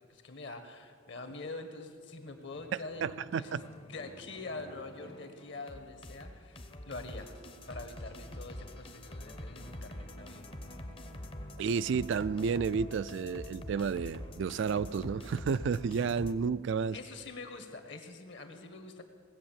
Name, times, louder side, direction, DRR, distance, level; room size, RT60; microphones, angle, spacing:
voice 1, 0.0-7.3 7.7-10.5 16.9-19.0, left 3 dB, 55° left, 7 dB, 1.4 m, -45 dB
sound 1, 2.3-16.3, left 1 dB, 25° left, 0.7 m, -46 dB
voice 2, 3.0-3.6 11.6-17.0, right 5 dB, 60° right, 16 dB, 0.3 m, -31 dB
18.5 x 8.2 x 7.3 m, 2.1 s
head